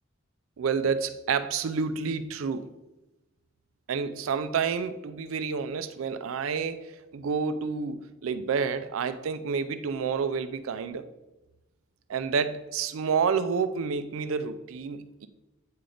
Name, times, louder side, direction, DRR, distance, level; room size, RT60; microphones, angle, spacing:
voice 1, 0.6-2.7 3.9-11.1 12.1-15.3, right 5 dB, 80° right, 12 dB, 0.4 m, -29 dB
8.6 x 3.4 x 3.8 m, 1.0 s
head